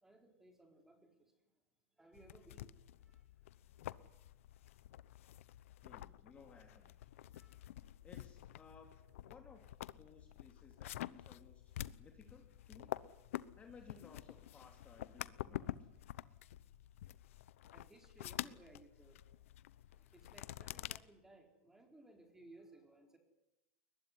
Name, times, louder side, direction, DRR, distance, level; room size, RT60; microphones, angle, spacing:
voice 1, 0.0-1.3 2.0-2.7 3.0-3.2 7.3-7.6 17.7-19.2 19.9-23.2, right 2 dB, 5° right, 4 dB, 4.3 m, -62 dB
sound 1, 2.1-21.0, left 13 dB, 75° left, 0.9 m, -49 dB
voice 2, 5.8-7.0 8.0-8.9 9.2-9.6 10.0-12.9 13.6-15.9, left 5 dB, 20° left, 3 dB, 2.9 m, -60 dB
22.0 x 20.5 x 9.7 m, 0.92 s
supercardioid pair, 155°, 7 cm